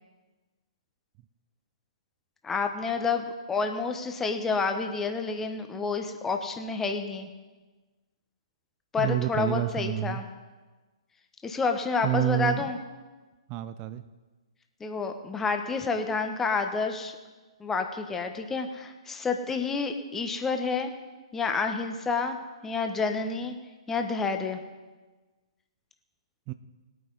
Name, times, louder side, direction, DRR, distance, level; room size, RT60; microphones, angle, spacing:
voice 1, 2.4-7.3 8.9-10.2 11.4-12.8 14.8-17.1 17.6-20.9 21.3-22.4 22.6-23.5 23.9-24.6, left 4 dB, 10° left, 5 dB, 1.2 m, -29 dB
voice 2, 9.0-10.2 12.0-12.7 13.5-14.0 26.5-26.6, right 13 dB, 30° right, 12 dB, 0.5 m, -28 dB
20.0 x 9.3 x 4.1 m, 1.3 s
figure-of-eight pair, 120°, 3 cm